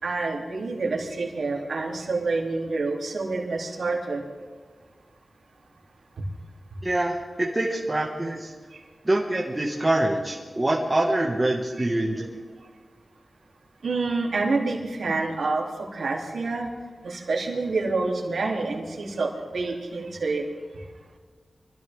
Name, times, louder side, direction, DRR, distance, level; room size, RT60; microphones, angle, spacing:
voice 1, 0.0-4.2 8.7-8.8 13.8-15.7 15.9-16.7 17.0-20.5, right 3 dB, 90° right, -1 dB, 3.0 m, -27 dB
voice 2, 6.8-8.5 9.1-12.3, right 1 dB, 25° right, -2 dB, 1.7 m, -25 dB
25.0 x 15.0 x 3.6 m, 1.5 s
wide cardioid pair, 85°, 0 cm